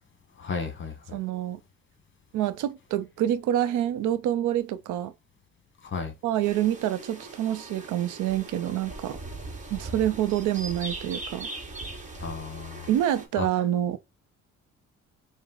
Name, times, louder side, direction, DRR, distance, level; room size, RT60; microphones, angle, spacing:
voice 1, 0.4-1.2 5.9-6.1 12.2-12.9 13.4-13.5, left 5 dB, 40° left, 1.1 m, -33 dB
voice 2, 1.1-1.6 2.3-5.1 6.2-9.2 9.7-11.5 12.9-14.0, right 12 dB, 85° right, 0.5 m, -27 dB
sound 1, 6.4-13.3, right 2 dB, 25° right, 1.1 m, -40 dB
4.9 x 2.1 x 3.8 m
cardioid pair, 90°, 30 cm